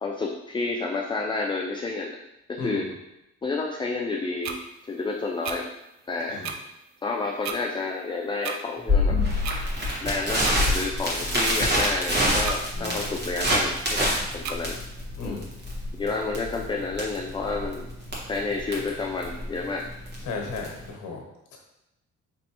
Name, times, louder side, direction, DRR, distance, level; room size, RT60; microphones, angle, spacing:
voice 1, 0.0-2.2 2.5-2.9 3.4-4.6 4.9-5.7 6.1-6.4 7.0-9.2 10.0-14.8 15.2-15.4 15.9-17.9 18.3-19.8, left 3 dB, 15° left, 0 dB, 0.3 m, -30 dB
voice 2, 2.6-2.9 6.3-6.5 12.7-13.2 15.2-15.4 20.2-21.2 21.5-21.6, left 3 dB, 75° left, 1 dB, 1.0 m, -35 dB
sound 1, 4.4-4.6 5.4-5.6 6.4-6.6 7.4-7.6 8.4-8.6 9.4-9.6 10.4-10.6 11.4-11.6 12.4-12.6 13.4-13.6 14.4-14.6, right 6 dB, 65° right, 0.5 m, -32 dB
Crackle, 8.9-20.9, left 1 dB, 35° right, 1.4 m, -26 dB
4.3 x 3.1 x 2.9 m, 0.91 s
cardioid pair, 90°, 30 cm